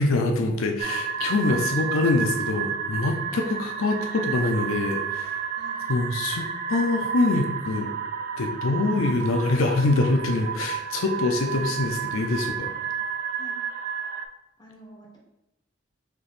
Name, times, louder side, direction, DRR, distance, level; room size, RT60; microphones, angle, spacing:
voice 1, 0.0-5.5 5.9-8.0 8.4-12.7, left 2 dB, 75° left, 3 dB, 0.5 m, -24 dB
sound 1, 0.8-14.3, right 7 dB, 45° right, 0.3 m, -31 dB
voice 2, 1.6-1.9 3.3-3.6 5.6-5.8 8.8-8.9 11.5-11.7 12.8-12.9 13.4-13.6 14.6-15.2, equal, 20° left, -2 dB, 0.9 m, -47 dB
3.6 x 2.8 x 3.9 m, 0.90 s
head